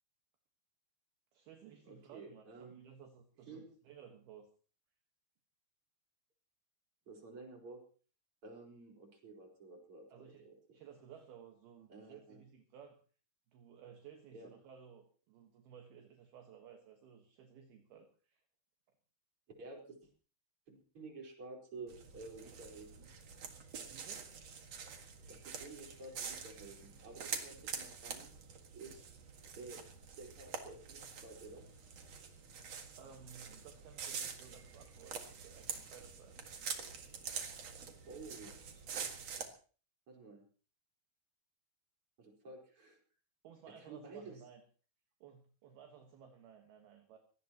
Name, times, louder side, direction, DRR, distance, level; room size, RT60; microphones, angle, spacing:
voice 1, 1.3-4.5 10.1-10.5 10.7-13.0 13.5-18.4 23.9-24.3 27.6-27.8 32.9-36.4 43.4-44.6 45.2-47.2, right 7 dB, 65° right, 4 dB, 3.1 m, -57 dB
voice 2, 1.8-2.9 3.5-3.7 7.1-7.8 8.4-10.5 11.9-12.4 14.3-14.5 19.6-20.0 20.7-23.1 25.3-28.3 28.7-29.1 29.6-29.8 30.2-31.7 37.7-38.6 40.1-40.4 42.2-43.0 43.8-44.4, right 3 dB, 30° right, 1 dB, 5.0 m, -52 dB
sound 1, 21.9-39.5, right 6 dB, 50° right, 2.2 m, -46 dB
23.5 x 18.0 x 3.0 m, 0.40 s
omnidirectional pair, 5.2 m